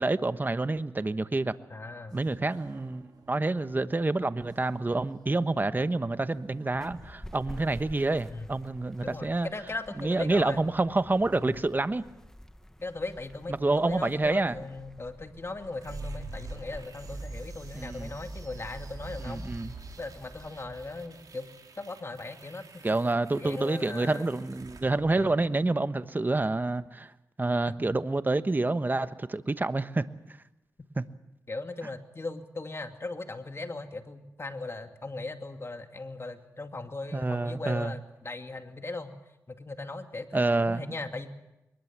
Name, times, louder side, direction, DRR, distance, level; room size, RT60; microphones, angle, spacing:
voice 1, 0.0-1.5 2.1-3.0 3.3-9.5 10.0-12.0 13.5-14.6 17.7-18.1 19.3-19.7 22.8-27.1 27.4-30.1 31.0-31.1 37.1-37.9 40.3-40.9, right 2 dB, 30° right, 12 dB, 1.1 m, -28 dB
voice 2, 1.7-2.2 8.3-8.5 9.0-10.7 11.3-11.6 12.8-19.4 20.0-21.5 21.8-24.3 25.1-25.4 27.6-27.7 31.5-39.2 39.5-41.3, left 2 dB, 40° left, 6 dB, 2.5 m, -38 dB
sound 1, 2.1-8.2, right 3 dB, 85° right, 7.0 m, -57 dB
sound 2, 6.7-20.5, left 1 dB, 10° left, 1.5 m, -50 dB
sound 3, 15.8-25.8, right 2 dB, 65° right, 4.4 m, -44 dB
22.5 x 20.5 x 7.4 m, 0.92 s
cardioid pair, 50°, 7 cm